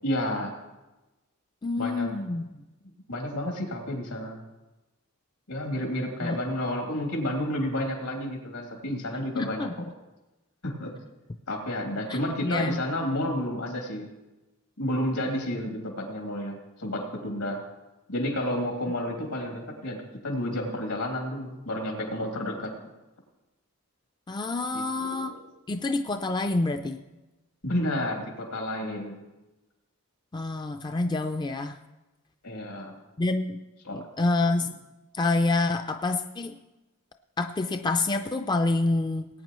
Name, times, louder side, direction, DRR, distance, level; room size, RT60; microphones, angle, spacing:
voice 1, 0.0-0.5 1.8-2.1 3.1-4.4 5.5-9.7 10.6-10.9 11.5-14.1 14.8-17.6 18.1-22.7 24.7-25.4 27.6-29.2 32.4-33.0 33.8-34.0, left 1 dB, 85° left, 0 dB, 2.8 m, -31 dB
voice 2, 1.6-2.5 6.2-6.4 9.3-9.7 12.1-12.8 24.3-25.3 25.7-27.0 30.3-31.8 33.2-33.6 33.9-34.7 35.1-36.5 37.4-39.3, left 2 dB, 20° left, 6 dB, 0.3 m, -27 dB
19.5 x 9.1 x 3.1 m, 1.1 s
head